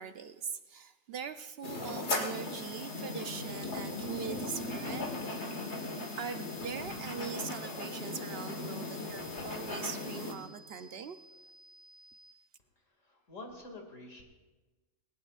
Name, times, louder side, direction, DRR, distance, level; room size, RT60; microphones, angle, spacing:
voice 1, 0.0-5.5 5.8-5.9 6.2-11.2, right 6 dB, 60° right, 9 dB, 0.7 m, -42 dB
sound 1, 1.6-10.3, left 2 dB, 60° left, 1.8 m, -38 dB
sound 2, 2.3-12.3, right 1 dB, 20° right, 1.1 m, -57 dB
voice 2, 12.9-14.2, left 2 dB, 80° left, 1 dB, 2.7 m, -48 dB
20.0 x 19.0 x 2.4 m, 1.2 s
omnidirectional pair, 1.3 m